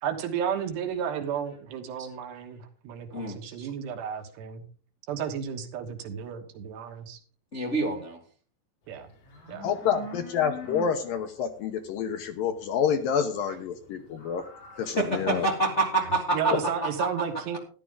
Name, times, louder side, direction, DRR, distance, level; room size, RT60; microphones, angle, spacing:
voice 1, 0.0-4.7 5.1-7.2 8.9-9.1 9.5-9.7 13.5-13.6 16.0-17.6, right 8 dB, 80° right, 3.5 m, -33 dB
voice 2, 3.1-3.7 7.5-8.2 14.8-17.1, right 2 dB, 60° left, 0.7 m, -27 dB
sound 1, 9.0-15.8, left 2 dB, 90° left, 6.0 m, -45 dB
voice 3, 9.6-14.4 14.8-15.5 16.5-16.6, left 7 dB, 75° left, 2.3 m, -28 dB
13.5 x 11.0 x 3.8 m
omnidirectional pair, 4.8 m